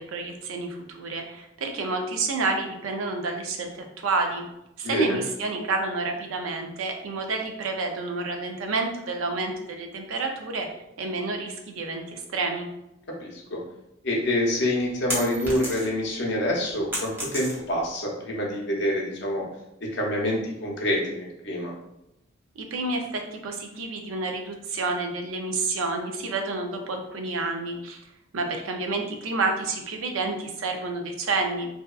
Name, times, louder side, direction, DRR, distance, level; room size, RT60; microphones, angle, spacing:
voice 1, 0.0-3.7 4.0-4.5 4.8-10.7 11.0-12.7 22.6-28.0 28.3-31.7, right 3 dB, 85° right, 4 dB, 0.4 m, -29 dB
voice 2, 4.8-5.2 13.2-13.6 14.0-19.4 19.8-21.7, left 1 dB, 55° left, -1 dB, 0.6 m, -26 dB
sound 1, 14.3-16.1 16.5-17.9, equal, 10° right, 0.5 m, -32 dB
2.7 x 2.2 x 2.3 m, 0.85 s
head